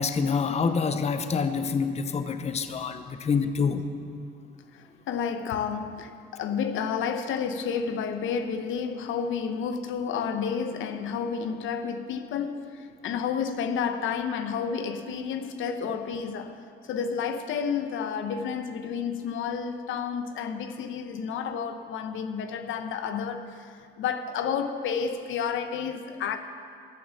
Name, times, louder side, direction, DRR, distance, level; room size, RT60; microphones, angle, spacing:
voice 1, 0.0-3.9, left 5 dB, 35° left, 0.6 m, -26 dB
voice 2, 4.7-26.4, left 6 dB, 80° left, 0.8 m, -31 dB
14.5 x 6.9 x 6.9 m
cardioid pair, 90°, 20 cm